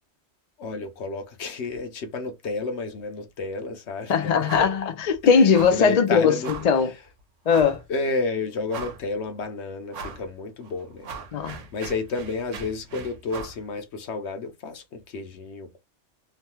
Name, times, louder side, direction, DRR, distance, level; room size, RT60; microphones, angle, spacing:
voice 1, 0.6-4.5 5.2-6.5 6.8-6.9 7.9-11.1 11.7-15.8, left 3 dB, 70° left, 1.0 m, -31 dB
voice 2, 4.1-6.3 6.6-6.9 7.5-7.8 11.3-11.6, left 6 dB, 50° left, 0.5 m, -19 dB
sound 1, 4.5-4.8 5.1-5.2 5.5-5.9 6.4-6.8 7.5-7.8 8.3-8.4 8.7-9.2 9.9-10.3 10.6-13.6, right 4 dB, 80° right, 1.1 m, -39 dB
3.1 x 2.2 x 2.8 m
omnidirectional pair, 1.3 m